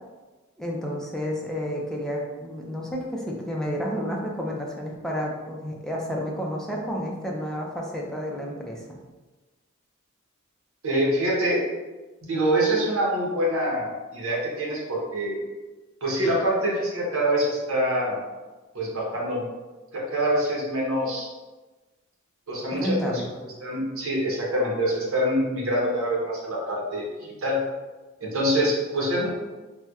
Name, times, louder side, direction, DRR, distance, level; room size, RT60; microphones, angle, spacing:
voice 1, 0.6-9.0 22.7-23.3, equal, 5° left, -2 dB, 0.4 m, -30 dB
voice 2, 10.8-11.6 12.2-15.4 16.0-18.2 18.7-19.4 19.9-21.3 22.5-23.0 23.4-27.1 27.4-27.6 28.2-29.3, right 1 dB, 90° right, -3 dB, 0.8 m, -25 dB
4.1 x 2.2 x 2.3 m, 1.2 s
head